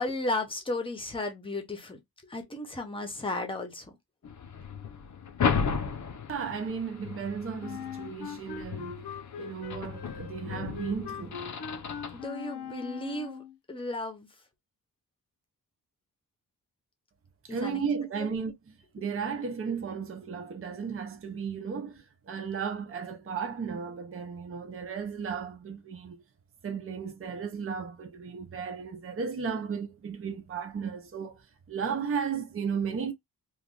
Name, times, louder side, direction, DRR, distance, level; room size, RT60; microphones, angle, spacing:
voice 1, 0.0-4.0 12.1-13.4 13.7-14.3 17.5-17.8 18.2-18.3 19.0-19.1, left 2 dB, 15° left, 0.8 m, -34 dB
sound 1, 4.2-12.2, left 6 dB, 45° left, 0.6 m, -35 dB
voice 2, 6.3-9.1 9.4-11.4 17.4-26.2 26.6-33.1, right 6 dB, 35° right, 0.6 m, -35 dB
Wind instrument woodwind instrument, 7.6-13.6, left 7 dB, 90° left, 0.8 m, -41 dB
3.0 x 2.4 x 3.7 m
wide cardioid pair, 170°, 39 cm